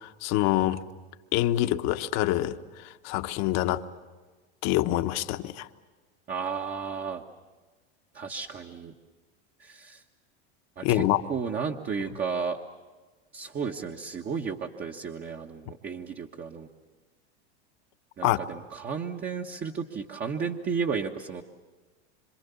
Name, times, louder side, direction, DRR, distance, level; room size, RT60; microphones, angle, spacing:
voice 1, 0.0-0.8 1.3-3.8 4.6-5.7 10.8-11.2 18.2-18.4, left 15 dB, 50° left, 8 dB, 1.2 m, -26 dB
voice 2, 6.3-7.2 8.1-8.9 9.6-10.0 10.8-11.0 11.3-12.6 13.3-16.7 18.2-21.4, right 6 dB, 30° right, 2 dB, 1.4 m, -33 dB
26.5 x 26.5 x 7.1 m, 1.3 s
supercardioid pair, 120°, 33 cm